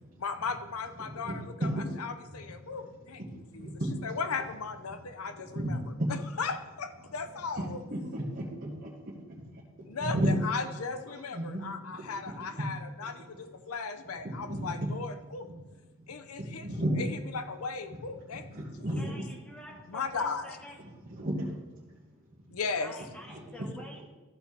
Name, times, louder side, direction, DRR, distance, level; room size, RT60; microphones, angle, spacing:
voice 1, 0.2-1.7 2.0-3.2 3.5-3.7 4.0-5.8 6.1-7.8 9.8-15.5 16.1-18.7 18.9-19.2 19.9-20.6 22.5-23.0, left 4 dB, 85° left, 10 dB, 0.7 m, -37 dB
voice 2, 1.2-1.7 3.3-3.9 5.5-5.7 6.0-6.1 7.6-7.7 7.9-10.4 11.1-12.3 13.0-13.1 14.5-14.9 16.0-16.1 16.4-17.0 18.5-19.2 21.0-22.1 23.3-23.4, right 1 dB, 40° right, -8 dB, 1.5 m, -34 dB
voice 3, 19.0-20.7 22.8-24.0, equal, 5° left, -1 dB, 1.4 m, -47 dB
13.5 x 4.6 x 4.3 m, 1.2 s
head